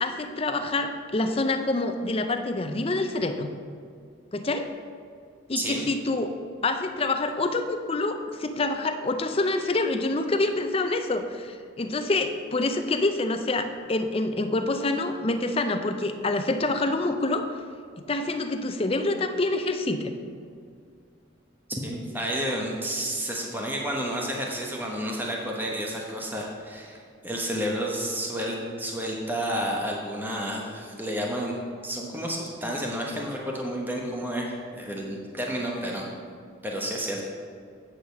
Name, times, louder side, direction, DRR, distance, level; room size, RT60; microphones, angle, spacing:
voice 1, 0.0-3.5 4.3-4.7 5.5-6.3 6.6-17.5 18.0-20.1, left 2 dB, 30° left, 7 dB, 0.5 m, -26 dB
voice 2, 21.7-36.0 36.6-37.2, equal, 10° right, -1 dB, 1.0 m, -31 dB
8.5 x 5.0 x 6.9 m, 2.2 s
head